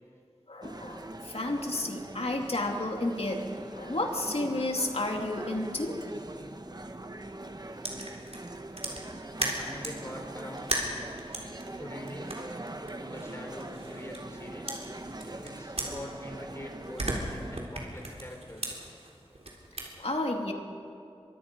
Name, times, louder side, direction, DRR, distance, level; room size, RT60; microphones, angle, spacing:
voice 1, 0.5-6.0 20.0-20.5, left 2 dB, 65° left, 2 dB, 2.6 m, -31 dB
sound 1, 0.6-17.6, right 1 dB, 40° right, 1.3 m, -42 dB
sound 2, 7.8-10.0 10.6-14.4 14.7-16.5 16.8-19.9, right 1 dB, 75° right, 3.7 m, -37 dB
voice 2, 9.4-10.8 11.8-12.4 13.1-14.7 15.4-18.9, left 1 dB, 25° left, 2 dB, 4.4 m, -43 dB
24.0 x 23.5 x 5.3 m, 2.5 s
wide cardioid pair, 50°, 11 cm